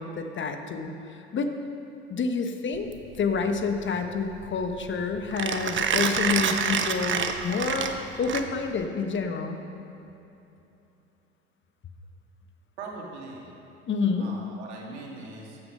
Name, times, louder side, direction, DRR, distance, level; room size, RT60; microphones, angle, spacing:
voice 1, 0.0-1.5 2.1-2.9 3.2-9.6 13.9-14.3, left 5 dB, 35° left, 6 dB, 1.1 m, -28 dB
Mechanisms, 2.8-8.9, right 6 dB, 35° right, 1.0 m, -28 dB
voice 2, 12.8-13.5 14.2-15.6, right 3 dB, 80° right, -1 dB, 2.1 m, -41 dB
14.5 x 6.9 x 5.7 m, 2.8 s
hypercardioid pair, 70°, 33 cm